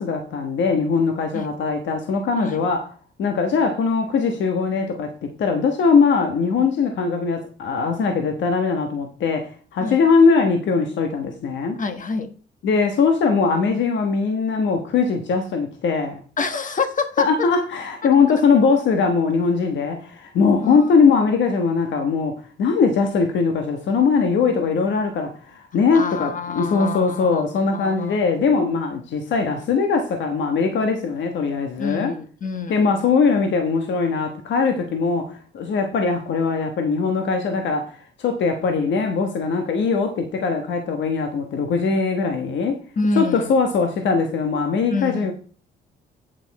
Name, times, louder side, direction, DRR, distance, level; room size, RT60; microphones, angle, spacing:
voice 1, 0.0-2.9 3.2-11.8 12.6-16.2 17.2-32.1 32.7-42.8 43.2-45.3, left 5 dB, 70° left, 1.3 m, -21 dB
voice 2, 11.8-12.3 16.4-17.5 20.6-20.8 25.9-27.4 27.7-28.2 31.8-32.9 43.0-43.5 44.9-45.3, left 4 dB, 40° left, 1.2 m, -27 dB
8.9 x 6.7 x 4.2 m
cardioid pair, 90°, 20 cm